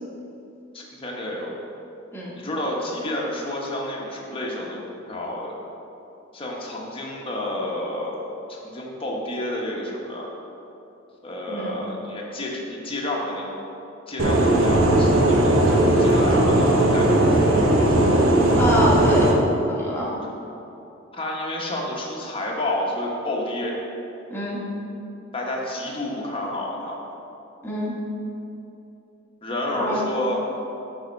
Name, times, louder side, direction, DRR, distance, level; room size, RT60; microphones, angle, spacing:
voice 1, 0.7-1.5 2.4-5.5 6.3-8.2 8.5-10.3 11.2-13.5 14.1-18.1 21.1-23.7 25.3-27.0 29.4-30.5, left 1 dB, 25° left, -2 dB, 1.1 m, -30 dB
voice 2, 11.5-11.8 18.5-19.3 19.7-20.1 24.3-24.6 27.6-27.9 29.7-30.0, equal, 10° left, -5 dB, 1.3 m, -26 dB
sound 1, 14.2-19.3, right 1 dB, 80° right, 0.9 m, -18 dB
8.8 x 3.6 x 5.2 m, 2.9 s
head